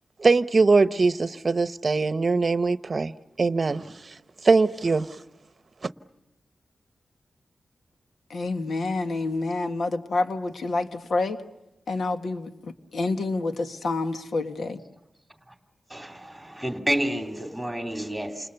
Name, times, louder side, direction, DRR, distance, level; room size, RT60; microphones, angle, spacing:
voice 1, 0.2-3.1 3.4-4.1 4.4-5.1, right 3 dB, 40° right, 13 dB, 0.9 m, -21 dB
voice 2, 8.3-11.4 11.9-14.8, left 3 dB, 75° left, 7 dB, 1.9 m, -28 dB
voice 3, 15.9-18.5, right 1 dB, ahead, 4 dB, 3.0 m, -29 dB
30.0 x 28.0 x 6.9 m, 0.91 s
wide cardioid pair, 140°, 0 cm